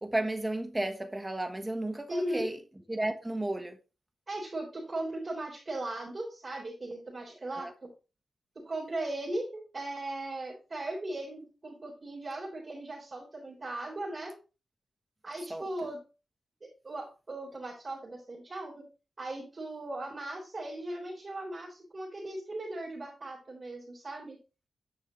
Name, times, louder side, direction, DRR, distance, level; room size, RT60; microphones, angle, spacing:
voice 1, 0.0-2.6 2.9-3.8 7.5-7.7 15.5-15.6, right 1 dB, 15° right, 1.2 m, -33 dB
voice 2, 2.1-2.4 4.3-7.9 8.7-14.3 15.2-16.0 16.8-18.8 19.2-24.4, right 1 dB, 40° right, 3.9 m, -38 dB
10.0 x 6.4 x 3.1 m
wide cardioid pair, 90°, 0 cm